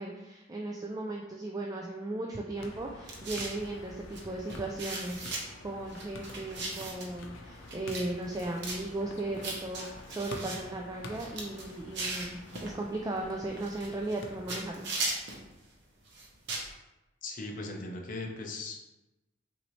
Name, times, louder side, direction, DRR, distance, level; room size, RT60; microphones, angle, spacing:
voice 1, 0.0-5.3 5.6-14.9, right 2 dB, 20° right, 0 dB, 0.3 m, -36 dB
sound 1, 2.5-14.7, left 2 dB, 90° left, 0.6 m, -48 dB
sound 2, 3.1-3.6 4.1-4.2 4.5-5.4 5.9-7.1 7.7-8.0 8.3-8.8 9.4-10.6 11.1-12.7 13.6-14.2 14.5-15.4 16.1-16.7, right 2 dB, 65° right, 0.9 m, -37 dB
voice 2, 17.2-18.9, left 2 dB, 45° left, 1 dB, 0.7 m, -39 dB
5.9 x 2.7 x 3.1 m, 1.0 s
head